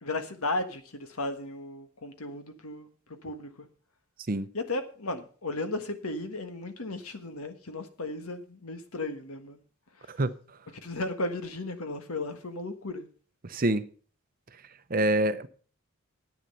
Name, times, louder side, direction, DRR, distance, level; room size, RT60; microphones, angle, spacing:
voice 1, 0.0-3.7 4.5-9.6 9.9-10.1 10.8-13.1, left 2 dB, 85° left, 1.5 m, -35 dB
voice 2, 13.5-13.9 14.9-15.5, right 1 dB, 40° right, 0.7 m, -26 dB
10.5 x 9.0 x 5.6 m
head